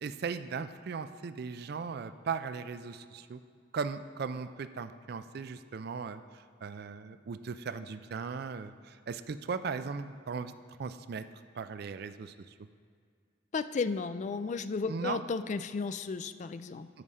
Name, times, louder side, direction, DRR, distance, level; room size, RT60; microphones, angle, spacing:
voice 1, 0.0-3.4 3.7-10.5 10.8-11.2 11.5-12.5 14.9-15.2, right 5 dB, 55° right, 12 dB, 0.4 m, -38 dB
voice 2, 13.5-16.9, left 4 dB, 40° left, 12 dB, 0.3 m, -34 dB
13.0 x 4.9 x 5.6 m, 2.1 s
head